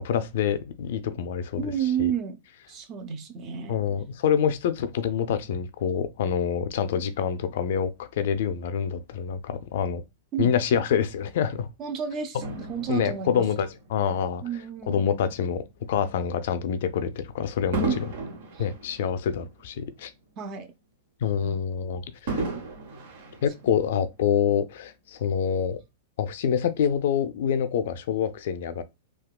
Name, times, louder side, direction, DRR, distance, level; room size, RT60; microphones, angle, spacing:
voice 1, 0.0-1.7 2.0-2.1 3.7-10.0 10.4-11.7 12.9-14.4 14.9-15.6 15.9-17.9 18.6-20.1 21.2-22.4 23.4-25.8 26.2-28.8, left 8 dB, 65° left, 0.4 m, -26 dB
voice 2, 1.6-2.4 2.7-3.8 10.3-10.5 11.8-13.5 14.4-15.0 17.9-18.0 18.5-18.7 20.4-20.7 21.4-21.9, right 8 dB, 40° right, 0.6 m, -31 dB
Fireworks, 12.4-15.0 15.6-15.8 17.7-20.2 20.6-20.7 22.3-24.1 24.9-25.0, right 2 dB, 65° right, 0.9 m, -35 dB
3.6 x 2.3 x 2.3 m
hypercardioid pair, 115°, 0 cm